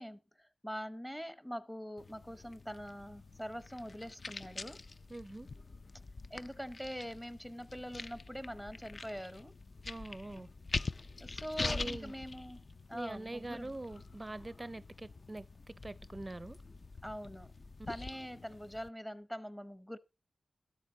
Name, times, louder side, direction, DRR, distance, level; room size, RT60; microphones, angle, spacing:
voice 1, 0.0-4.8 6.3-9.5 11.2-13.7 17.0-17.5 17.9-20.0, equal, 5° left, 0.8 m, -44 dB
sound 1, 2.0-18.9, left 3 dB, 50° left, 0.5 m, -45 dB
voice 2, 5.1-5.5 9.9-10.5 11.6-12.1 12.9-16.6, right 2 dB, 25° right, 0.5 m, -44 dB
13.0 x 10.5 x 3.8 m
cardioid pair, 60°, 0 cm